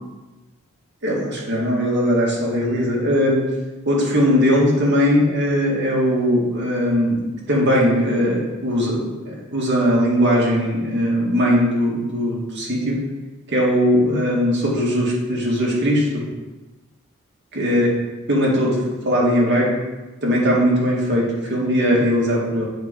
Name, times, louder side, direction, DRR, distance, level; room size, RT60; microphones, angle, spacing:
voice 1, 1.0-3.4 3.8-13.0 13.5-16.2 17.5-17.9 18.3-19.7 20.2-22.7, equal, 55° right, -4 dB, 2.0 m, -19 dB
7.9 x 4.3 x 5.1 m, 1.1 s
head